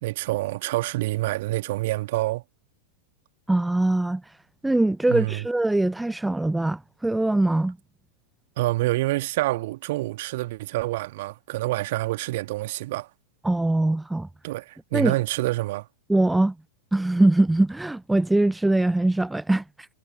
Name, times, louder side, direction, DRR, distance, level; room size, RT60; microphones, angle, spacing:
voice 1, 0.0-2.4 5.1-5.5 8.6-13.1 14.4-15.9, right 18 dB, 50° right, 1.9 m, -27 dB
voice 2, 3.5-4.2 4.6-7.8 13.4-14.3 14.9-15.1 16.1-16.5 16.9-19.6, right 2 dB, 5° right, 0.6 m, -22 dB
figure-of-eight pair, 90°, 0 cm